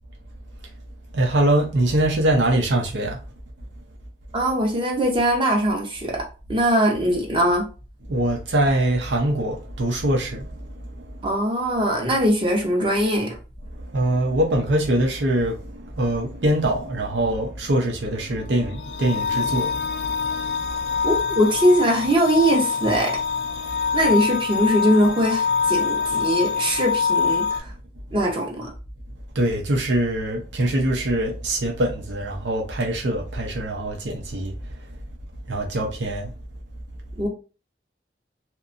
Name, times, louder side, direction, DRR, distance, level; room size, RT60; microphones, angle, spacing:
voice 1, 1.1-3.2 8.1-11.3 13.6-21.2 23.7-24.1 29.3-35.0 35.5-36.3, right 1 dB, 90° right, 0.7 m, -24 dB
voice 2, 4.3-6.1 6.5-7.6 11.2-13.3 21.0-23.2 23.9-27.7 28.1-28.7 37.2-37.3, equal, 30° right, 0.6 m, -21 dB
sound 1, 18.5-27.6, left 5 dB, 65° left, 0.3 m, -25 dB
2.8 x 2.2 x 2.5 m
head